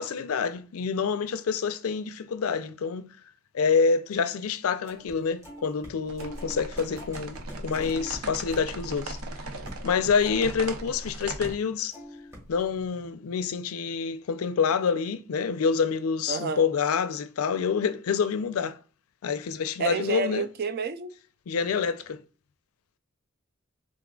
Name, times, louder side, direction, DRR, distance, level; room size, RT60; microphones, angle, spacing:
voice 1, 0.0-3.1 3.5-9.2 9.8-12.0 12.5-18.8 19.2-20.5 21.5-22.2, left 5 dB, 80° left, 0.4 m, -27 dB
sound 1, 4.8-5.1 5.4-11.1 11.4-11.6 11.9-12.7, equal, 15° right, 1.8 m, -46 dB
sound 2, 6.1-11.5, right 2 dB, 85° right, 0.6 m, -38 dB
voice 2, 16.3-16.6 19.8-21.1, right 5 dB, 50° right, 0.4 m, -29 dB
3.7 x 3.6 x 2.2 m
head